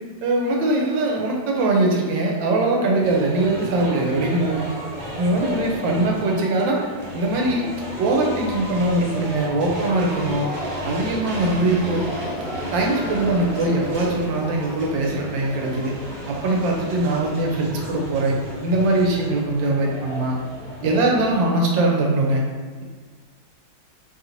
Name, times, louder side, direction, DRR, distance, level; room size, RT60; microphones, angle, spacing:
voice 1, 0.2-4.7 5.2-6.8 7.1-7.7 8.0-10.5 10.8-12.1 12.7-15.9 16.3-20.4 20.8-22.4, right 2 dB, 85° right, -1 dB, 1.3 m, -21 dB
sound 1, 3.0-21.3, equal, 50° right, 0.8 m, -33 dB
3.2 x 2.5 x 2.8 m, 1.5 s
omnidirectional pair, 2.0 m